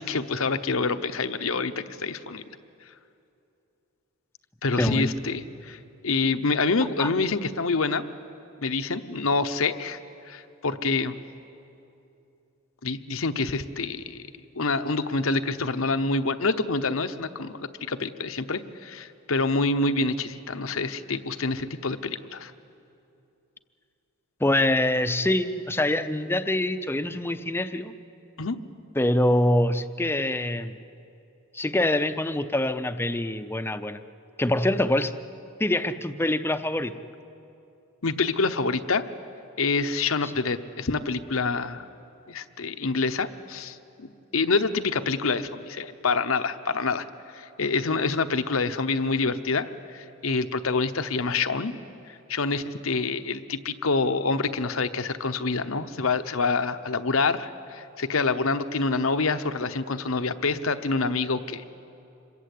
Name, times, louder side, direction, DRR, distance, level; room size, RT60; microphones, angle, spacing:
voice 1, 0.0-2.4 4.6-8.0 8.6-10.0 10.3-11.2 12.8-14.2 14.5-22.5 28.4-28.6 38.0-39.0 39.6-41.8 42.3-47.0 47.3-49.7 49.9-51.7 52.3-61.6, left 3 dB, 75° left, 10 dB, 1.0 m, -27 dB
voice 2, 4.7-5.1 7.0-7.1 24.4-27.9 29.0-30.7 31.5-34.0 34.4-35.1 35.6-36.9, left 1 dB, 10° left, 10 dB, 0.7 m, -24 dB
26.5 x 22.5 x 8.5 m, 2.8 s
head